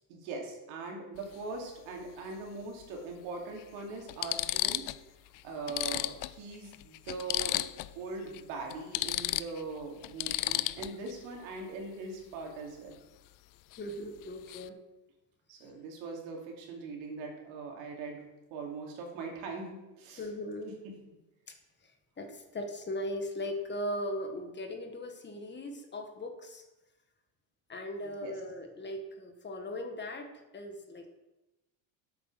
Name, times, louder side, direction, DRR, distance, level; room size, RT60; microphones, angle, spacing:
voice 1, 0.1-4.9 5.4-7.6 7.9-13.0 15.5-18.2 18.5-20.3 20.6-21.0 28.0-28.4, right 3 dB, 75° right, 0 dB, 2.9 m, -41 dB
sound 1, 1.2-1.3 2.8-2.9 3.6-3.7 4.1-5.0 5.3-5.4 5.7-8.0 8.3-8.4 8.7-11.1 13.7-13.9 14.2-14.7, left 16 dB, 45° left, 0.5 m, -33 dB
voice 2, 13.8-14.8 20.2-20.8 22.2-26.6 27.7-31.0, left 1 dB, 25° left, 5 dB, 1.4 m, -38 dB
8.5 x 8.0 x 6.2 m, 1.0 s
supercardioid pair, 115°, 46 cm